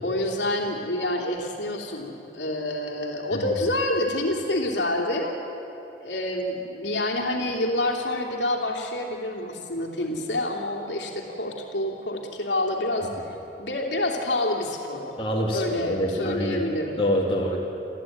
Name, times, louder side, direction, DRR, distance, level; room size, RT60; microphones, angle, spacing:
voice 1, 0.0-5.3 6.0-13.1 13.6-15.2 15.5-17.0, left 1 dB, 85° left, 0 dB, 3.0 m, -27 dB
voice 2, 15.2-16.6 17.0-17.6, equal, 30° left, -3 dB, 3.5 m, -25 dB
29.5 x 14.0 x 9.4 m, 2.9 s
head